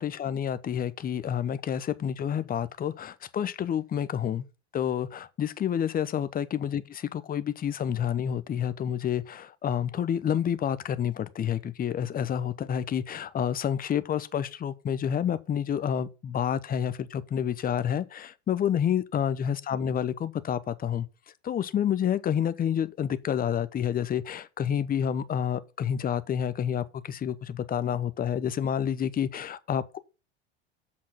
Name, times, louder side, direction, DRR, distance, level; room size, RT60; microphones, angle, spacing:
voice 1, 0.0-4.5 4.7-21.1 21.4-30.0, left 9 dB, 25° left, 0.9 m, -29 dB
7.5 x 6.4 x 5.7 m
hypercardioid pair, 85°, 34 cm